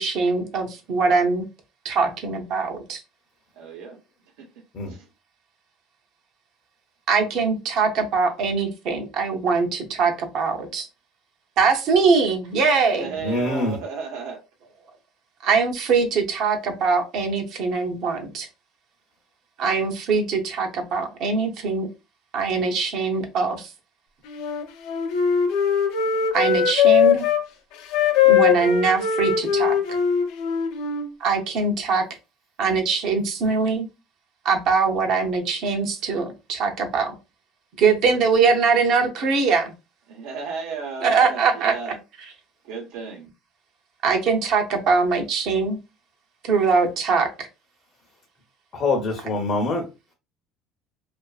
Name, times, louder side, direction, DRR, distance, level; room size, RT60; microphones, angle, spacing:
voice 1, 0.0-1.4 1.8-3.0 7.1-10.9 11.6-13.1 15.4-18.5 19.6-21.9 22.3-23.7 26.3-27.3 28.3-29.7 31.2-32.0 32.6-33.9 34.4-37.1 37.8-39.7 41.0-41.7 44.0-45.8 46.4-47.5, right 4 dB, 50° right, 3 dB, 0.6 m, -22 dB
voice 2, 3.6-4.0 4.4-4.5 4.9-5.1 12.9-14.4 37.9-38.1 40.1-42.0 42.6-43.3, right 5 dB, 90° right, 1 dB, 0.9 m, -34 dB
voice 3, 13.2-13.8 48.7-49.8, left 2 dB, 35° left, 1 dB, 0.6 m, -24 dB
Wind instrument woodwind instrument, 24.3-27.4 27.9-31.1, left 8 dB, 80° left, 0.5 m, -20 dB
2.4 x 2.4 x 2.3 m, 0.27 s
cardioid pair, 165°, 0 cm